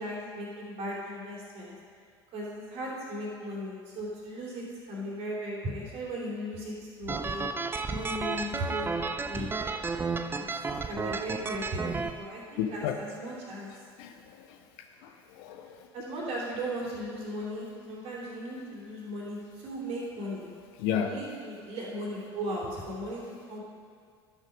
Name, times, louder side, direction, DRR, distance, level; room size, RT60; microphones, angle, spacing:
voice 1, 0.0-1.7 2.3-7.5 7.9-8.9 9.2-9.5 10.4-13.8 15.1-15.2 15.6-20.4 21.1-23.6, equal, 45° right, -4 dB, 3.0 m, -37 dB
sound 1, 7.1-12.1, right 4 dB, 15° right, 0.5 m, -32 dB
voice 2, 12.6-13.0 14.0-14.6 15.0-15.9 20.8-21.1, left 9 dB, 55° left, 5 dB, 0.7 m, -33 dB
11.5 x 6.5 x 5.2 m, 2.1 s
figure-of-eight pair, 70°, 14 cm